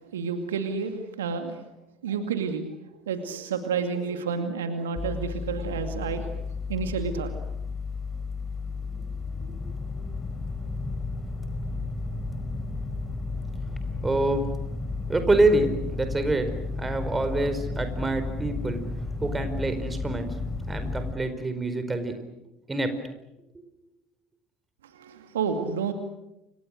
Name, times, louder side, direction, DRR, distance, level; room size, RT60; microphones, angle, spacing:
voice 1, 0.0-1.6 2.0-6.3 6.7-7.3 24.9-25.9, right 5 dB, 75° right, 7 dB, 2.3 m, -30 dB
sound 1, 5.0-21.1, left 3 dB, 20° left, 4.7 m, -33 dB
voice 2, 14.0-14.5 15.1-16.5 16.8-18.8 19.2-20.3 20.7-22.1 22.7-22.9, right 2 dB, 15° right, 9 dB, 4.7 m, -26 dB
29.5 x 25.5 x 6.6 m, 0.90 s
figure-of-eight pair, 65°, 0 cm